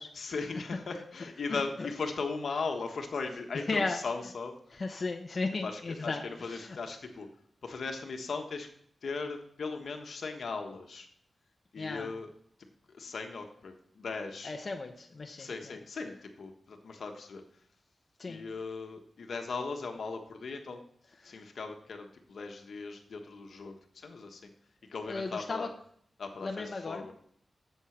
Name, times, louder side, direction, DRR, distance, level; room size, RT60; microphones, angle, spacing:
voice 1, 0.1-4.8 5.6-7.3 7.6-8.7 9.0-11.1 11.7-12.3 12.9-14.5 15.4-17.4 18.3-20.8 21.2-24.4 24.9-25.7 26.2-27.1, left 4 dB, 75° left, 4 dB, 1.3 m, -38 dB
voice 2, 1.5-1.9 3.7-4.0 4.7-6.8 11.8-12.1 14.4-15.7 18.2-18.4 21.2-21.4 25.1-25.7 26.4-27.1, left 3 dB, 50° left, 3 dB, 0.9 m, -35 dB
8.1 x 7.7 x 6.0 m, 0.65 s
wide cardioid pair, 75°, 0 cm